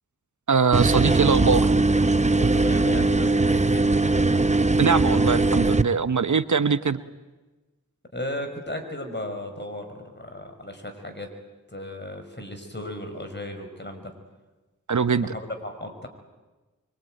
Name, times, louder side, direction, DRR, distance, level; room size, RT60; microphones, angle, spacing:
voice 1, 0.5-1.7 4.8-7.0 14.9-15.3, right 5 dB, 65° right, 13 dB, 1.0 m, -22 dB
sound 1, 0.7-5.8, right 2 dB, 20° right, 0.8 m, -20 dB
voice 2, 2.4-4.0 8.1-11.3 11.7-14.1 15.2-16.1, left 1 dB, 35° left, 6 dB, 5.3 m, -35 dB
24.5 x 23.5 x 9.1 m, 1.2 s
cardioid pair, 45°, 32 cm